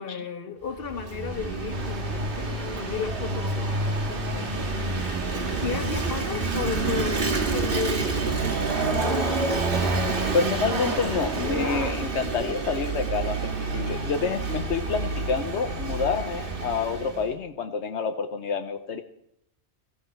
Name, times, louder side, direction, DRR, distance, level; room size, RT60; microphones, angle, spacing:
voice 1, 0.0-4.6 5.4-9.6, left 6 dB, 60° left, 5 dB, 1.6 m, -34 dB
Vehicle / Engine, 0.7-17.3, right 3 dB, 55° right, 1.7 m, -29 dB
sound 1, 1.7-11.9, right 2 dB, 80° right, 2.1 m, -33 dB
voice 2, 10.3-19.0, left 5 dB, 90° left, 7 dB, 1.2 m, -28 dB
16.0 x 15.5 x 4.4 m, 0.77 s
omnidirectional pair, 1.1 m